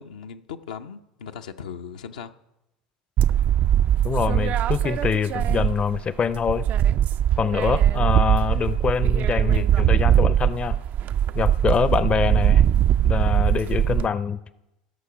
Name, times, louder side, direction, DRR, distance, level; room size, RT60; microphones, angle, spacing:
voice 1, 0.0-2.3, left 7 dB, 80° left, 6 dB, 0.5 m, -38 dB
sound 1, 3.2-6.0 6.3-14.1, right 10 dB, 45° right, 0.3 m, -21 dB
voice 2, 4.0-6.7 7.4-10.8 11.3-12.6 13.0-14.4, left 6 dB, 30° left, 16 dB, 0.5 m, -24 dB
16.0 x 6.8 x 5.0 m, 0.90 s
hypercardioid pair, 80°, 4 cm